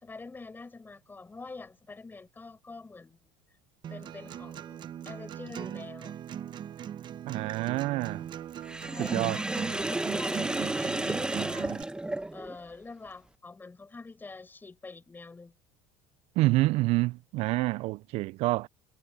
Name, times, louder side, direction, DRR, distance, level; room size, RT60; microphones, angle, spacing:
voice 1, 0.0-3.3 3.9-6.1 8.9-11.7 12.3-15.5, left 3 dB, 15° left, 4.8 m, -46 dB
Acoustic guitar, 3.8-11.8, right 9 dB, 40° right, 1.0 m, -40 dB
voice 2, 7.2-8.3 9.0-9.4 16.4-18.7, right 20 dB, 60° right, 0.4 m, -27 dB
Sink (filling or washing), 8.6-12.6, right 2 dB, 5° right, 1.0 m, -32 dB
supercardioid pair, 115°, 12 cm